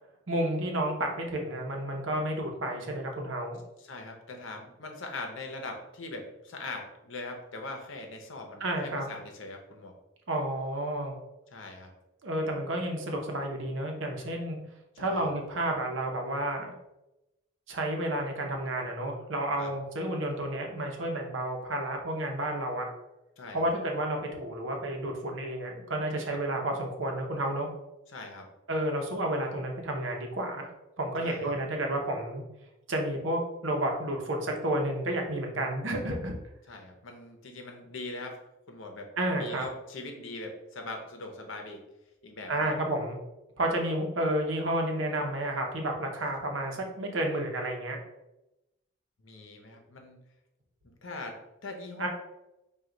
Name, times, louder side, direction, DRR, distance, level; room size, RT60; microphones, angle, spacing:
voice 1, 0.3-3.6 8.6-9.1 10.3-11.2 12.2-14.6 15.0-16.7 17.7-22.9 23.5-27.7 28.7-30.7 31.0-32.4 32.9-36.3 39.2-39.6 42.5-43.2 43.6-48.0 52.0-52.1, right 1 dB, 70° right, 2 dB, 0.8 m, -31 dB
voice 2, 3.8-9.9 11.5-11.9 15.0-15.3 19.6-19.7 23.4-23.7 26.3-26.4 28.1-28.5 31.2-31.6 36.7-38.4 38.7-41.8 42.2-42.7 49.2-50.2 50.8-52.1, left 2 dB, 70° left, 3 dB, 0.8 m, -41 dB
4.5 x 2.4 x 3.8 m, 0.94 s
head